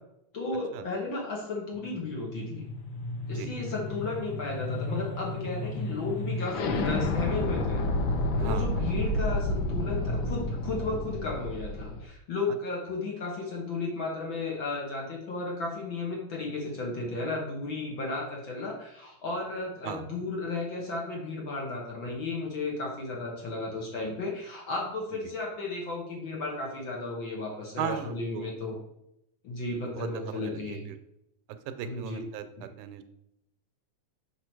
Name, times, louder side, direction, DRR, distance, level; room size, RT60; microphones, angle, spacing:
voice 1, 0.3-2.7 3.3-7.8 8.4-28.8 29.4-30.8 31.8-32.2, left 3 dB, 50° left, -2 dB, 1.7 m, -34 dB
sound 1, 1.8-12.0, left 2 dB, 90° left, 1.0 m, -31 dB
voice 2, 8.4-8.8 19.8-20.1 27.8-28.5 29.8-31.0 31.7-33.0, right 9 dB, 85° right, 10 dB, 2.1 m, -37 dB
6.7 x 5.0 x 4.6 m, 0.82 s
omnidirectional pair, 3.4 m